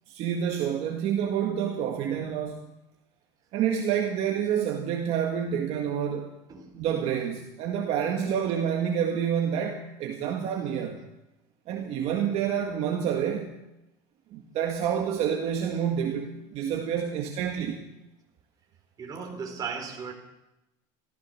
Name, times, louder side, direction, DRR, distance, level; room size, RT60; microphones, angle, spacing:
voice 1, 0.1-2.6 3.5-6.3 6.7-11.0 11.7-13.6 14.3-17.8, right 8 dB, 55° right, 2 dB, 1.8 m, -28 dB
voice 2, 19.0-20.1, right 6 dB, 30° right, 2 dB, 3.9 m, -36 dB
14.5 x 14.5 x 6.4 m, 0.94 s
cardioid pair, 140°, 13 cm